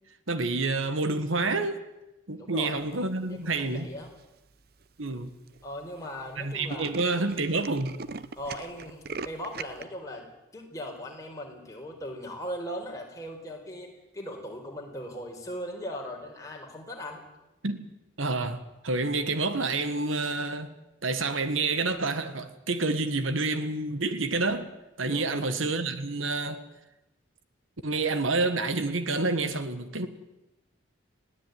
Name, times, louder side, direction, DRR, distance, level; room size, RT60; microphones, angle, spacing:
voice 1, 0.3-1.8 2.3-3.9 5.0-5.3 6.4-8.1 17.6-17.9 18.2-20.7 21.0-24.7 25.0-26.6 27.8-30.1, right 3 dB, 85° right, 1.6 m, -28 dB
voice 2, 2.3-3.0 3.3-4.1 5.6-6.9 8.4-10.2 10.5-13.9 14.1-17.2 25.1-25.4, equal, 15° left, 4.6 m, -39 dB
Tools, 3.8-4.2 4.8-4.9 5.1-5.2 5.5-5.7 6.0-6.1 6.4-9.8, right 4 dB, 50° right, 0.8 m, -40 dB
20.5 x 16.0 x 9.3 m
head